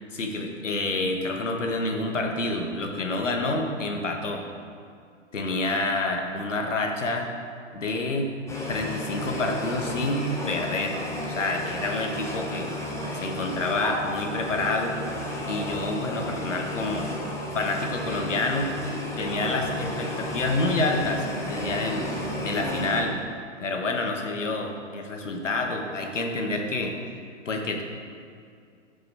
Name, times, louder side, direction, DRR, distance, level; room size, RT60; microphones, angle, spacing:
voice 1, 0.1-4.4 5.3-7.3 7.7-8.3 8.7-11.0 11.3-12.7 13.1-14.9 15.5-17.1 17.5-18.7 19.2-22.1 22.4-23.1 23.6-27.0 27.4-27.8, left 2 dB, 70° left, 3 dB, 1.5 m, -28 dB
sound 1, 8.5-23.0, equal, 5° left, 1.0 m, -33 dB
sound 2, 19.3-23.1, left 1 dB, 30° left, 1.2 m, -38 dB
10.5 x 6.4 x 4.8 m, 2.3 s
figure-of-eight pair, 115°, 38 cm